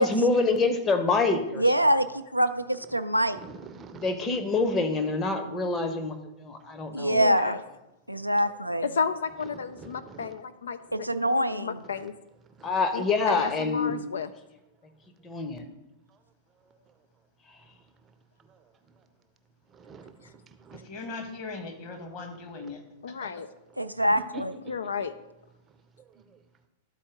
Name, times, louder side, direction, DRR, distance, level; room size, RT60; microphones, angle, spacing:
voice 1, 0.0-1.6 4.0-7.2 12.6-14.0 15.2-15.6, left 3 dB, 20° left, 7 dB, 0.9 m, -26 dB
voice 2, 1.6-2.1 2.3-2.5 2.9-3.4 6.9-7.5 8.1-8.9 10.9-11.8 23.8-24.5, equal, 90° right, 9 dB, 0.4 m, -24 dB
voice 3, 3.3-4.4 8.5-8.6 9.5-10.4 11.8-12.0 12.6-12.7 19.7-20.3 20.6-20.8 24.1-24.8, right 3 dB, 20° right, 8 dB, 0.6 m, -45 dB
voice 4, 7.1-7.6 8.8-12.1 12.9-14.3 23.0-23.5 24.7-25.1, left 6 dB, 65° left, 11 dB, 0.3 m, -32 dB
voice 5, 20.7-23.3, left 3 dB, 35° left, 5 dB, 1.4 m, -40 dB
12.5 x 4.3 x 3.7 m, 0.96 s
figure-of-eight pair, 100°, 0 cm